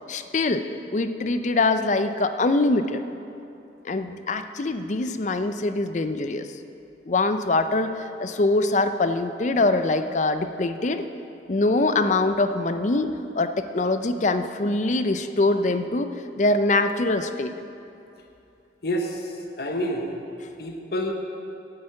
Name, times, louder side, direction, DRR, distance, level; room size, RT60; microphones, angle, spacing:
voice 1, 0.1-0.7 0.9-3.0 3.8-6.5 7.1-11.0 11.5-16.1 16.4-17.5, left 2 dB, 40° left, 9 dB, 0.5 m, -23 dB
voice 2, 18.8-20.2 20.6-21.1, equal, 55° left, 2 dB, 0.9 m, -28 dB
8.8 x 8.3 x 7.7 m, 2.7 s
head